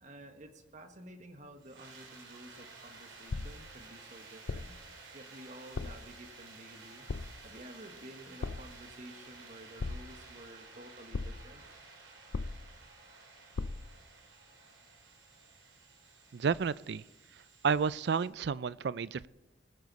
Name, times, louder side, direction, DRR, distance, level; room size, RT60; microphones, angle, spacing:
voice 1, 0.0-4.8 5.1-7.1 7.4-11.7, right 1 dB, 40° right, 6 dB, 1.4 m, -51 dB
sound 1, 1.6-18.3, right 4 dB, 85° right, 3.6 m, -54 dB
sound 2, 3.3-3.8 4.5-4.9 5.7-6.1 7.1-7.5 8.4-8.8 9.8-10.4 11.1-11.6 12.3-12.9 13.6-14.0, left 3 dB, 80° left, 0.5 m, -38 dB
voice 2, 16.3-17.0 17.6-19.3, right 6 dB, 60° right, 19 dB, 0.4 m, -31 dB
20.5 x 9.7 x 4.0 m, 1.1 s
head